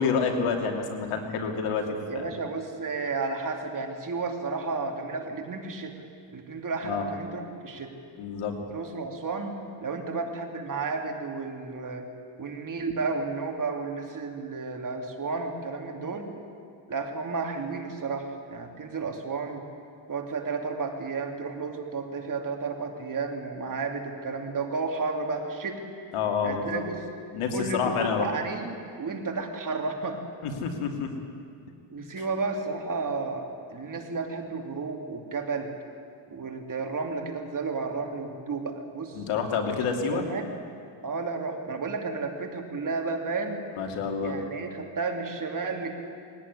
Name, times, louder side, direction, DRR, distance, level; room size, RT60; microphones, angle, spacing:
voice 1, 0.0-1.8 2.1-2.3 6.8-7.1 8.2-8.5 26.1-26.8 27.3-28.3 30.4-31.1 39.1-40.2 43.8-44.3, left 6 dB, 85° left, 3 dB, 3.1 m, -28 dB
voice 2, 2.1-5.9 6.3-7.9 8.7-12.0 12.4-16.3 16.9-19.6 20.1-25.8 26.4-27.0 27.5-30.2 31.9-35.7 36.3-39.2 40.1-40.5 41.0-43.6 44.2-45.9, right 4 dB, 40° right, 3 dB, 2.8 m, -32 dB
21.0 x 17.5 x 9.9 m, 2.4 s
cardioid pair, 120°, 50 cm